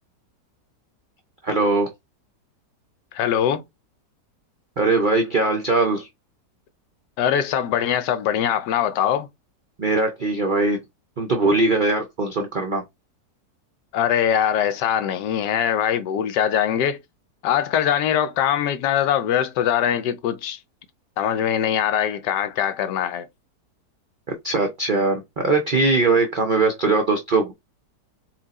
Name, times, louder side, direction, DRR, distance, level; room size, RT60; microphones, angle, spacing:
voice 1, 1.4-1.9 4.8-6.1 9.8-10.8 11.2-12.8 24.4-27.5, right 3 dB, 65° right, 0.5 m, -21 dB
voice 2, 3.1-3.6 7.2-9.3 13.9-17.0 17.4-20.6 21.2-23.3, left 9 dB, 80° left, 1.2 m, -22 dB
4.4 x 2.4 x 4.0 m
omnidirectional pair, 1.8 m